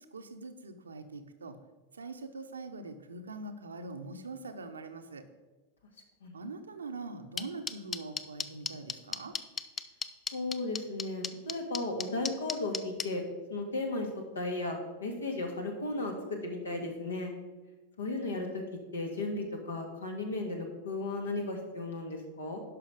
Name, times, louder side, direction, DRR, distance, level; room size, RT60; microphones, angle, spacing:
voice 1, 0.1-1.6 1.9-5.2 6.3-9.4, right 3 dB, 70° right, 7 dB, 0.8 m, -43 dB
sound 1, 7.4-13.0, left 6 dB, 20° left, 0.5 m, -33 dB
voice 2, 10.3-13.2 13.5-14.1 14.3-17.3 18.0-18.6 18.9-22.6, left 2 dB, 70° left, 3 dB, 1.8 m, -35 dB
11.0 x 5.7 x 4.9 m, 1.2 s
figure-of-eight pair, 90°, 0 cm